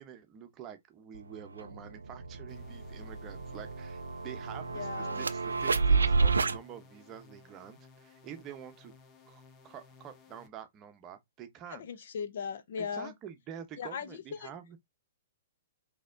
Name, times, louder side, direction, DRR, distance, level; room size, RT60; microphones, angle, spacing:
voice 1, 0.0-8.9 9.3-11.9 12.8-14.8, right 9 dB, 30° right, 0.7 m, -47 dB
sound 1, 1.1-1.2 1.6-6.6, right 4 dB, 85° right, 0.4 m, -30 dB
sound 2, 2.5-10.5, left 4 dB, 25° left, 0.8 m, -58 dB
voice 2, 4.7-5.2 11.7-13.1 13.8-14.1 14.4-14.5, left 6 dB, 60° left, 0.5 m, -38 dB
4.1 x 2.8 x 2.5 m
hypercardioid pair, 120°, 0 cm